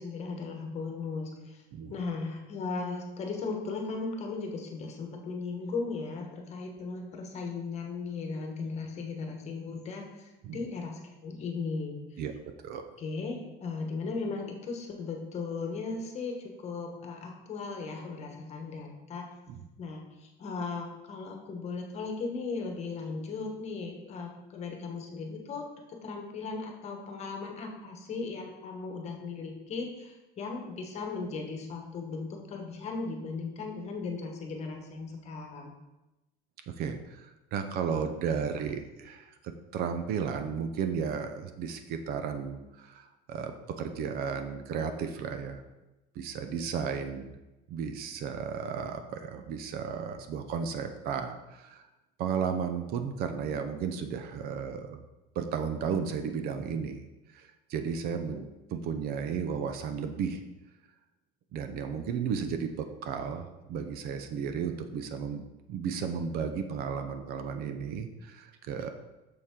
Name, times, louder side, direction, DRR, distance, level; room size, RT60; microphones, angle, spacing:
voice 1, 0.0-1.6 1.9-12.2 13.0-19.3 19.8-25.7 26.0-35.7 58.3-58.4, left 4 dB, 35° left, 2 dB, 1.2 m, -37 dB
voice 2, 36.7-45.6 46.1-47.4 47.7-51.8 52.2-55.0 55.3-57.0 57.3-58.4 58.7-60.4 61.5-65.4 65.7-68.9, right 6 dB, 50° right, 8 dB, 0.6 m, -34 dB
6.8 x 6.5 x 3.7 m, 1.0 s
cardioid pair, 150°, 20 cm